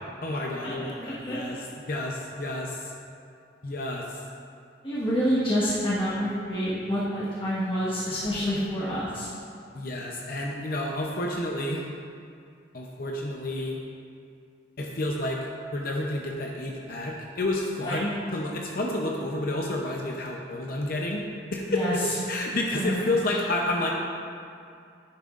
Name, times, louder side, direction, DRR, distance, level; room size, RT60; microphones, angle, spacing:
voice 1, 0.2-1.6 1.9-2.9 3.6-4.2 9.7-11.9 12.7-13.8 14.8-15.4 15.7-21.2 21.5-22.0 22.3-23.9, left 1 dB, 55° left, -1 dB, 0.7 m, -30 dB
voice 2, 1.0-1.6 4.8-9.3 17.8-18.0 21.7-21.9 22.7-22.9, equal, 30° left, -10 dB, 1.4 m, -27 dB
10.5 x 9.7 x 2.5 m, 2.4 s
head